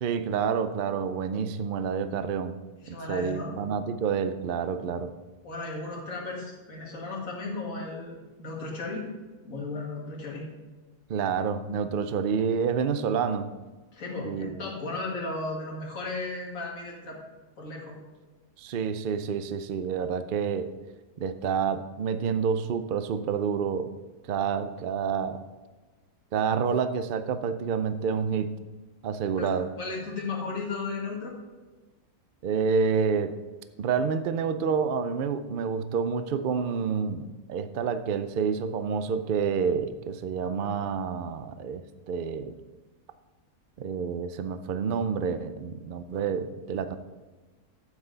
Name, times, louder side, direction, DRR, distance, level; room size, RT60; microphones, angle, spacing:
voice 1, 0.0-2.5 2.9-5.1 11.1-13.5 14.2-14.6 18.6-20.7 21.2-23.9 24.2-25.4 26.3-28.5 29.0-29.7 32.4-33.3 33.8-42.5 43.8-47.0, right 6 dB, 80° right, 11 dB, 0.4 m, -28 dB
voice 2, 2.8-3.5 5.4-9.1 9.4-10.5 13.9-17.2 17.6-18.0 29.4-29.5 29.8-31.3, left 3 dB, 60° left, -3 dB, 2.3 m, -35 dB
9.5 x 7.4 x 4.0 m, 1.3 s
omnidirectional pair, 1.6 m